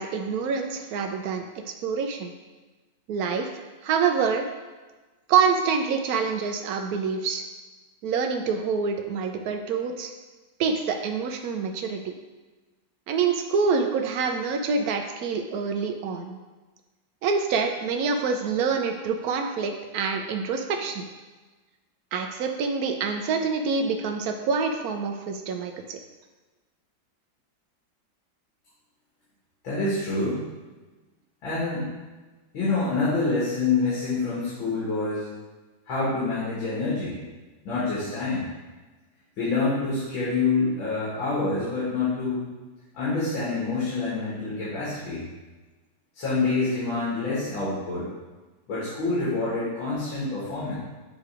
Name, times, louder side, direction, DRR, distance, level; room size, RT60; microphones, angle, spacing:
voice 1, 0.0-2.3 3.1-4.5 5.3-7.4 8.0-10.1 10.6-12.1 13.1-16.4 17.2-21.0 22.1-26.0, right 5 dB, 70° right, 5 dB, 0.9 m, -26 dB
voice 2, 29.6-30.5 31.4-31.9 32.5-35.3 35.9-37.2 37.6-38.5 39.4-42.4 42.9-45.2 46.1-48.1 48.7-50.7, left 3 dB, 85° left, -10 dB, 2.6 m, -27 dB
7.5 x 3.1 x 4.8 m, 1.2 s
omnidirectional pair, 2.1 m